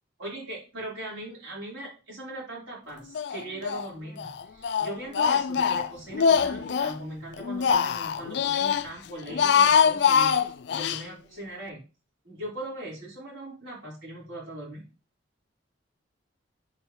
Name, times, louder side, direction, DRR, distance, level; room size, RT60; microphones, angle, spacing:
voice 1, 0.2-11.8 12.2-14.9, right 1 dB, 85° right, -5 dB, 4.3 m, -39 dB
Speech, 3.2-3.9 4.2-7.0 7.4-8.9 9.2-11.0, left 7 dB, 60° left, 0.3 m, -23 dB
8.1 x 4.9 x 3.1 m, 0.32 s
head